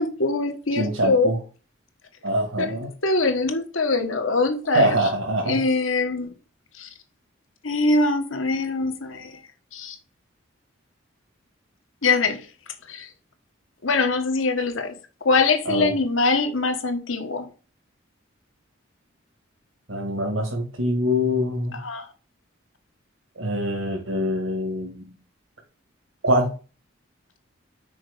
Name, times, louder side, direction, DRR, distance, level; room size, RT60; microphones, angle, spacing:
voice 1, 0.0-1.3 2.6-2.8 3.0-4.9 5.4-6.3 6.8-6.9 7.6-9.3 9.7-9.9 12.0-12.4 12.9-13.1 13.8-14.9 15.2-17.5 21.8-22.0, left 3 dB, 80° left, 1.5 m, -23 dB
voice 2, 0.7-1.4 2.2-2.9 4.7-5.6 15.7-16.0 19.9-21.8 23.4-25.0 26.2-26.5, equal, 80° right, 2.1 m, -24 dB
6.3 x 5.1 x 6.7 m
head